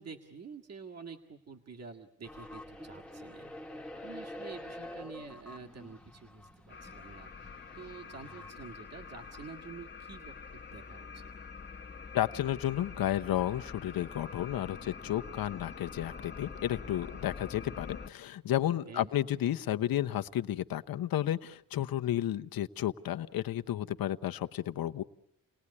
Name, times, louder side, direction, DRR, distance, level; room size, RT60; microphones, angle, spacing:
voice 1, 0.0-3.5 4.0-10.3 10.7-11.3 18.9-19.1, right 5 dB, 45° right, 3 dB, 1.9 m, -48 dB
sound 1, 2.2-9.5, left 1 dB, 5° left, 1.3 m, -47 dB
sound 2, 6.7-18.1, left 5 dB, 30° left, 1.1 m, -46 dB
voice 2, 12.1-25.0, left 12 dB, 75° left, 8 dB, 0.9 m, -32 dB
29.5 x 20.0 x 9.7 m, 0.83 s
wide cardioid pair, 150°, 36 cm